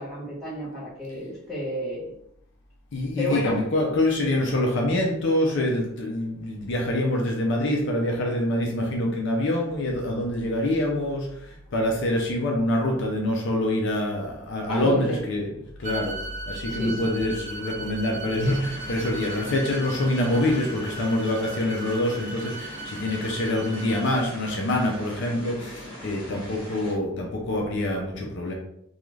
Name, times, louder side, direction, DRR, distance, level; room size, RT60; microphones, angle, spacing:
voice 1, 0.0-2.1 3.2-3.6 14.7-15.2 16.7-17.1, equal, ahead, -11 dB, 1.2 m, -31 dB
voice 2, 2.9-15.5 15.8-16.2 16.5-28.5, left 1 dB, 60° left, 0 dB, 0.5 m, -25 dB
sound 1, 15.8-24.1, right 3 dB, 35° right, 0.4 m, -38 dB
sound 2, 18.4-27.0, left 1 dB, 25° left, 1.2 m, -41 dB
2.4 x 2.3 x 3.1 m, 0.76 s
head